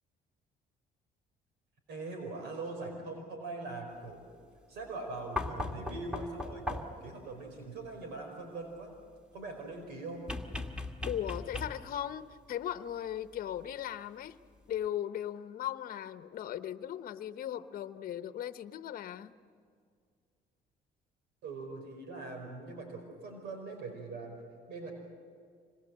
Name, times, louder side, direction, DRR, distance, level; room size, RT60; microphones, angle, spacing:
voice 1, 1.9-4.2 4.7-8.9 9.3-10.2 21.4-24.4 24.7-24.9, right 3 dB, 80° right, 3 dB, 4.9 m, -42 dB
sound 1, 5.4-7.1 10.3-12.0 13.6-13.7, left 2 dB, 5° right, 2.0 m, -38 dB
voice 2, 11.0-14.4 14.7-19.3, left 11 dB, 60° left, 10 dB, 1.0 m, -38 dB
26.5 x 21.0 x 7.7 m, 2.1 s
cardioid pair, 110°, 17 cm